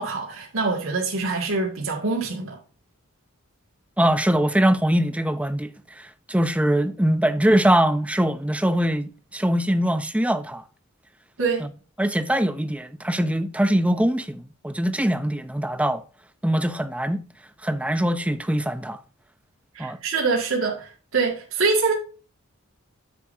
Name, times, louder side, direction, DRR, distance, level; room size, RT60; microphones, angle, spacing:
voice 1, 0.0-2.6 11.4-11.6 19.7-21.9, right 4 dB, 65° right, 2.1 m, -25 dB
voice 2, 4.0-10.6 11.6-11.7 12.0-16.0 16.4-17.2 17.6-19.0 19.8-20.0, right 1 dB, 5° right, 0.6 m, -22 dB
9.8 x 7.5 x 2.7 m
head